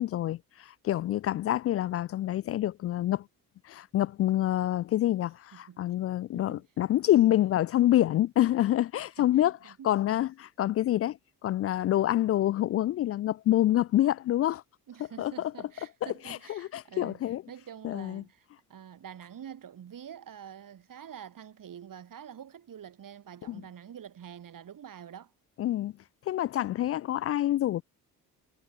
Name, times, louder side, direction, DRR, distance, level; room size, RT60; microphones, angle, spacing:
voice 1, 0.0-3.3 3.6-14.6 15.2-15.5 16.0-17.4 17.8-18.2 23.5-23.6 25.6-25.9 26.3-27.8, left 13 dB, 30° left, 0.5 m, -27 dB
voice 2, 5.5-5.8 6.3-6.6 9.2-9.3 9.6-10.0 14.9-17.2 17.5-25.3, right 9 dB, 40° right, 5.9 m, -46 dB
figure-of-eight pair, 50°, 48 cm